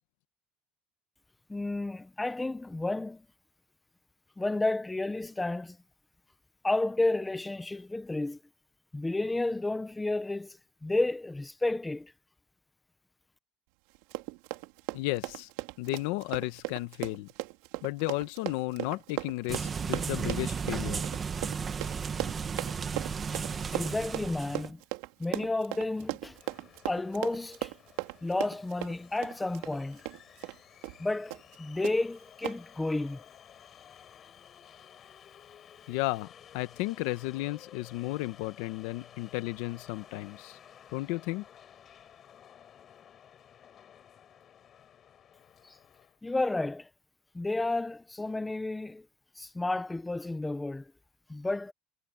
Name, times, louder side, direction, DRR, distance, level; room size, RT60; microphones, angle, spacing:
voice 1, 1.5-3.2 4.4-5.8 6.6-8.4 8.9-12.1 23.3-23.4 23.7-24.8 25.2-26.4 26.9-27.7 28.2-30.0 31.0-33.2 45.6-45.7 46.2-46.9 47.3-49.0 49.4-50.9 51.3-51.7, left 2 dB, 5° left, 0.7 m, -31 dB
Run, 13.9-30.6 30.8-31.0 31.3-31.6 31.8-31.9 32.4-32.6, right 21 dB, 75° right, 2.4 m, -37 dB
voice 2, 14.9-15.5 15.8-17.3 17.8-21.0 35.9-36.3 36.5-40.6 40.9-41.5, left 19 dB, 70° left, 1.1 m, -33 dB
sound 1, 19.5-24.7, right 6 dB, 20° right, 1.1 m, -34 dB
sound 2, 26.3-46.2, left 9 dB, 25° left, 4.9 m, -55 dB
cardioid pair, 180°, 0 cm